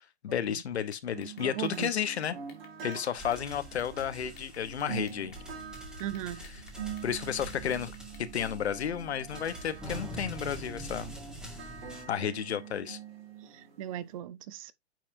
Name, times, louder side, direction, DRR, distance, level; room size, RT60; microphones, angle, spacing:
voice 1, 0.2-2.4 2.8-5.3 7.0-7.9 8.2-11.1 12.1-13.0, left 8 dB, 75° left, 1.0 m, -32 dB
sound 1, 0.9-4.1 4.4-5.4 5.7-8.3, left 7 dB, 30° left, 2.1 m, -57 dB
sound 2, 1.1-14.1, right 7 dB, 60° right, 2.4 m, -45 dB
voice 2, 1.5-1.9 6.0-6.4 13.4-14.7, right 12 dB, 35° right, 0.5 m, -37 dB
sound 3, 3.2-12.0, equal, ahead, 1.7 m, -44 dB
8.9 x 4.6 x 2.6 m
hypercardioid pair, 125°, 33 cm